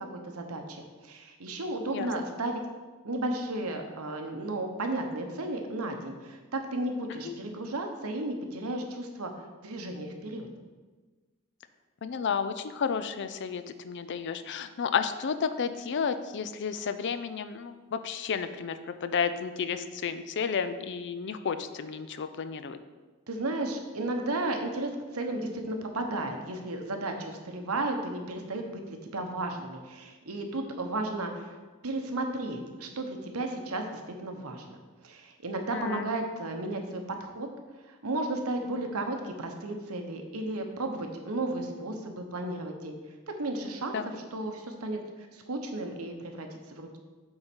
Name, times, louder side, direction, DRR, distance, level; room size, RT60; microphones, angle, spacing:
voice 1, 0.1-2.6 3.0-9.3 9.6-10.5 23.3-31.5 31.8-34.8 35.0-37.5 37.9-43.0 43.3-45.0 45.3-47.0, right 2 dB, 85° right, 4 dB, 1.0 m, -34 dB
voice 2, 12.0-22.8 35.7-36.1 43.9-44.1, left 6 dB, 55° left, 11 dB, 0.4 m, -32 dB
7.7 x 4.0 x 6.1 m, 1.3 s
head